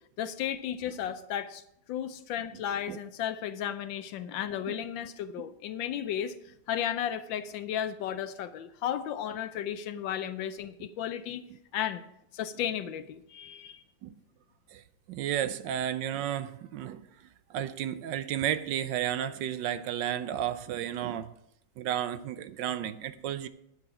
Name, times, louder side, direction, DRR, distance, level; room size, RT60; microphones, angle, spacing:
voice 1, 0.2-1.6 1.9-6.3 6.7-11.4 11.7-12.0 12.3-13.8, left 10 dB, 75° left, 11 dB, 1.3 m, -34 dB
voice 2, 15.1-21.3 21.8-23.5, right 10 dB, 75° right, 12 dB, 1.2 m, -33 dB
9.8 x 9.3 x 4.8 m, 0.77 s
omnidirectional pair, 2.2 m